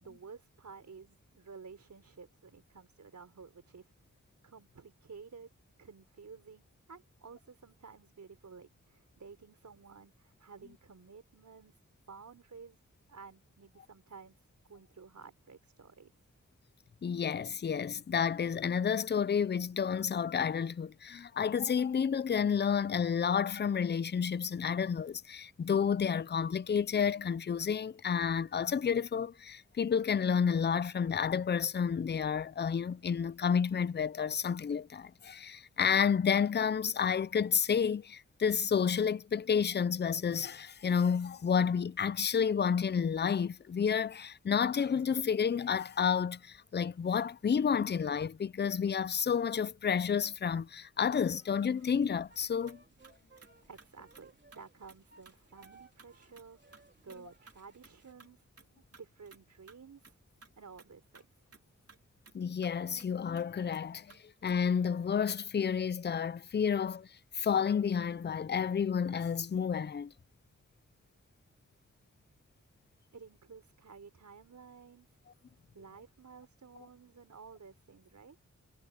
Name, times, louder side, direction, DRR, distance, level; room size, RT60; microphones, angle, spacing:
voice 1, 0.0-3.9 4.4-5.5 5.8-11.8 12.1-12.8 13.1-16.1 53.6-58.5 58.7-60.2 60.6-61.3 73.1-75.1 75.7-78.4, right 5 dB, 70° right, 4.5 m, -53 dB
voice 2, 17.0-52.8 62.3-64.1 64.4-67.1 67.3-70.1, left 7 dB, 35° left, 0.5 m, -30 dB
sound 1, 51.0-58.1, right 3 dB, 35° right, 3.7 m, -62 dB
sound 2, 52.6-52.8 53.0-53.5 53.8-54.3 54.5-54.6 54.9-55.0 55.2-55.3 55.6-56.1 56.3-56.4 56.7-56.8 57.1-57.2 57.5-57.6 57.8-57.9 58.2-58.3 58.6-59.4 59.7-59.8 60.0-60.1 60.4-61.3 61.5-61.6 61.9-62.0 62.2-62.4 62.6-63.1 63.3-63.5 63.7-64.5, right 4 dB, 55° right, 3.1 m, -57 dB
wide cardioid pair, 85°, 29 cm